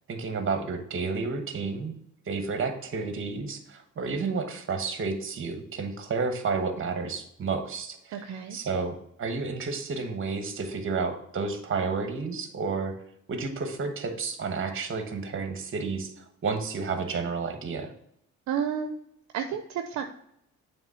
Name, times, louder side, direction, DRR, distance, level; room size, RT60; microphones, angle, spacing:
voice 1, 0.1-2.0 2.3-8.1 8.5-12.9 13.3-17.9, right 4 dB, 45° right, 7 dB, 1.2 m, -31 dB
voice 2, 8.1-8.6 18.5-18.9 19.3-20.0, right 7 dB, 65° right, 7 dB, 0.6 m, -31 dB
7.1 x 3.3 x 5.6 m, 0.74 s
cardioid pair, 90°, 30 cm